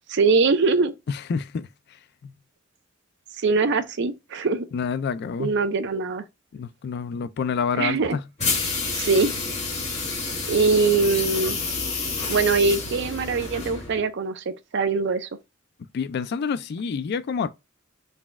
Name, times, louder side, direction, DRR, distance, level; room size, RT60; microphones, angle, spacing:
voice 1, 0.1-0.9 3.4-4.7 5.4-6.2 7.7-8.2 8.9-9.3 10.5-11.6 12.3-15.3, right 4 dB, 60° right, 0.5 m, -22 dB
voice 2, 1.1-1.7 2.2-2.3 4.7-5.5 6.5-8.2 15.9-17.5, left 6 dB, 55° left, 0.3 m, -28 dB
sound 1, 8.4-14.0, left 4 dB, 35° left, 1.3 m, -29 dB
4.1 x 2.3 x 3.4 m
head